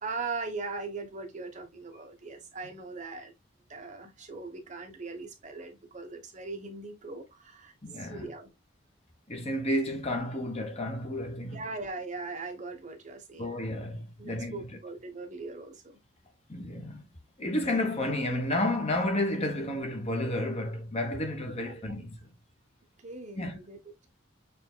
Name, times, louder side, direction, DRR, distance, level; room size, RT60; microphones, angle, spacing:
voice 1, 0.0-3.3 3.7-8.5 11.5-13.5 14.2-16.0 21.9-22.0 23.0-23.9, right 3 dB, 40° right, 1.0 m, -40 dB
voice 2, 7.8-8.3 9.3-11.6 13.4-14.6 16.5-17.1 17.4-22.2 23.4-23.6, left 1 dB, 35° left, 1.2 m, -31 dB
6.8 x 3.4 x 2.2 m
head